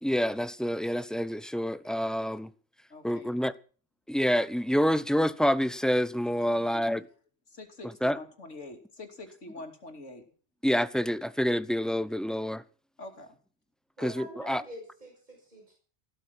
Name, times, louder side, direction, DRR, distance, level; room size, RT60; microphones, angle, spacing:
voice 1, 0.0-2.5 3.0-3.5 4.1-7.0 8.0-8.2 10.6-12.6 14.0-14.6, equal, ahead, 0.6 m, -27 dB
voice 2, 2.9-3.3 6.5-7.1 7.5-10.2 13.0-13.3, left 2 dB, 85° left, 3.3 m, -45 dB
voice 3, 14.0-15.7, right 1 dB, 40° right, 6.8 m, -45 dB
15.5 x 13.0 x 6.0 m
omnidirectional pair, 1.2 m